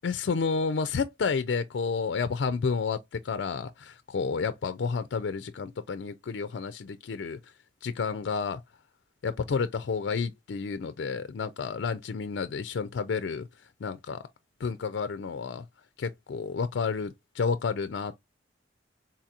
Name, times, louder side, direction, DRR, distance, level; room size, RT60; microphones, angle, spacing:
voice 1, 0.0-7.4 7.8-8.6 9.2-13.5 13.8-14.2 14.6-15.6 16.0-18.2, left 5 dB, 65° left, 0.4 m, -30 dB
3.9 x 2.8 x 2.4 m
head